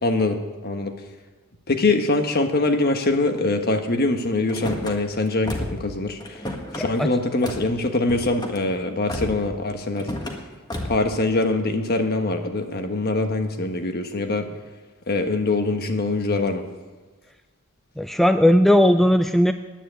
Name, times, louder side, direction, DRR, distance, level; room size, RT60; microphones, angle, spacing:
voice 1, 0.0-0.9 1.7-6.4 6.7-10.1 10.8-14.5 15.1-16.6, left 2 dB, 45° left, 6 dB, 1.2 m, -23 dB
Car / Slam, 4.5-4.9 5.4-5.9 6.2-6.8 7.4-7.7 8.0-8.6 9.1-9.5 10.0-10.4 10.7-11.1, left 1 dB, 20° left, 1.5 m, -31 dB
voice 2, 6.8-7.1 18.0-19.5, equal, ahead, 8 dB, 0.3 m, -17 dB
10.0 x 9.2 x 9.2 m, 1.3 s
head